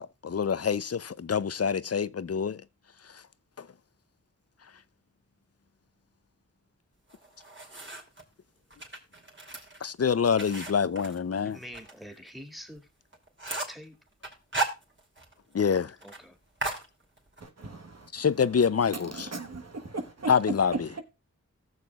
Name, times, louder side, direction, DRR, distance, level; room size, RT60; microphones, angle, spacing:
voice 1, 0.0-2.6 3.6-3.7 9.8-11.6 15.5-15.9 18.1-19.3 20.3-20.9, left 6 dB, 55° left, 0.6 m, -26 dB
sound 1, 7.1-8.2 8.7-11.9 12.3-12.4 12.8-12.9 13.1-13.8 14.2-15.3 15.6-15.7 16.0-16.2 16.6-17.5, right 2 dB, 40° right, 2.9 m, -35 dB
voice 2, 11.4-12.9 13.7-14.0 16.0-16.4, equal, ahead, 2.2 m, -45 dB
voice 3, 17.4-18.3 18.9-20.3 20.9-21.0, right 3 dB, 60° right, 1.3 m, -38 dB
18.0 x 6.7 x 2.3 m
cardioid pair, 45°, 30 cm